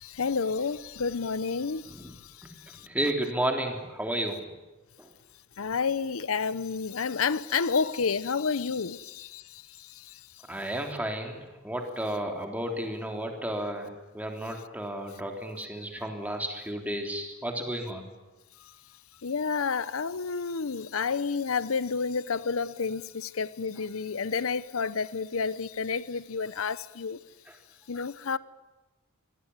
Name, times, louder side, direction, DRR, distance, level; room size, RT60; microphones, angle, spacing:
voice 1, 0.0-2.9 5.6-10.2 15.9-16.0 18.6-18.7 19.2-27.2 27.9-28.4, left 5 dB, 90° left, 0.7 m, -30 dB
voice 2, 2.8-4.4 5.0-5.1 10.5-18.1, right 1 dB, 10° right, 3.5 m, -32 dB
24.5 x 18.5 x 9.6 m
head